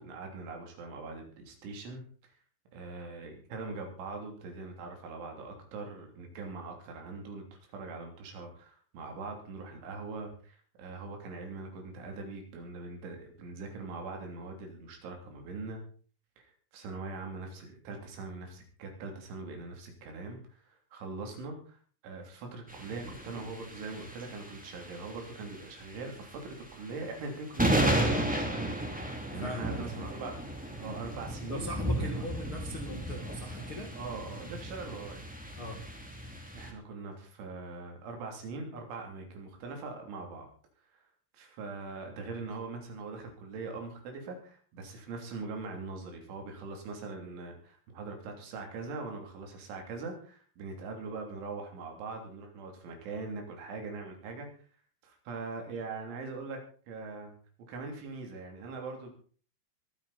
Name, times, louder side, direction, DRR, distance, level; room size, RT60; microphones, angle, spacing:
voice 1, 0.0-2.0 2.7-15.8 16.4-16.5 16.7-21.8 22.0-31.7 32.0-32.3 34.0-35.2 36.5-40.5 40.9-41.0 41.3-54.5 55.0-57.3 57.7-59.1, right 3 dB, 80° right, 3 dB, 5.6 m, -42 dB
sound 1, 22.7-36.7, right 1 dB, 5° right, 1.1 m, -34 dB
voice 2, 29.3-30.1 31.5-34.0 35.6-35.8, left 1 dB, 50° left, 2 dB, 1.6 m, -40 dB
23.0 x 9.7 x 4.2 m, 0.42 s
omnidirectional pair, 5.4 m